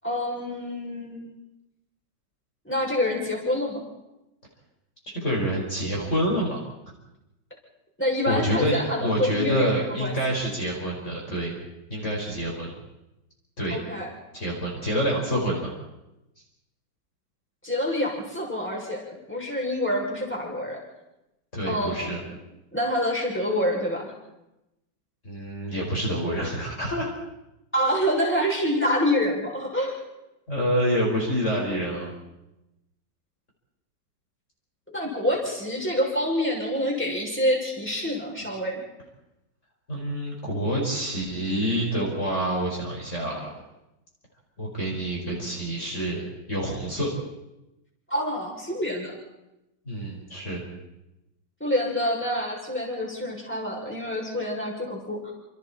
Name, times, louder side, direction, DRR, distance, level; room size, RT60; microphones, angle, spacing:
voice 1, 0.0-1.3 2.6-3.8 8.0-10.2 13.7-14.1 17.6-20.8 21.7-22.1 22.7-24.1 27.7-30.0 34.9-38.8 48.1-49.2 51.6-55.3, left 1 dB, 5° left, -2 dB, 6.6 m, -27 dB
voice 2, 5.1-6.6 8.3-11.5 11.9-12.7 13.6-13.8 14.3-15.7 21.5-22.2 25.2-27.1 30.5-32.1 39.9-43.5 44.6-47.1 49.9-50.7, equal, 35° left, -2 dB, 5.5 m, -27 dB
29.0 x 28.0 x 4.4 m, 0.94 s
omnidirectional pair, 2.1 m